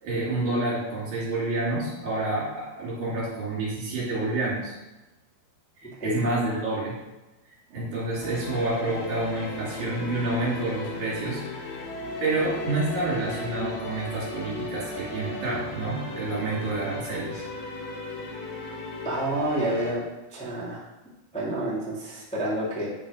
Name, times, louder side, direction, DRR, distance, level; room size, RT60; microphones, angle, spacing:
voice 1, 0.0-4.7 5.8-7.0 7.7-11.6 12.2-17.5, right 2 dB, 45° right, -6 dB, 3.9 m, -29 dB
sound 1, 8.2-19.9, left 2 dB, 60° left, 2.0 m, -36 dB
voice 2, 19.0-20.0 20.3-20.8 21.3-22.9, right 1 dB, 10° left, -8 dB, 0.4 m, -28 dB
9.0 x 5.1 x 5.0 m, 1.0 s
omnidirectional pair, 5.1 m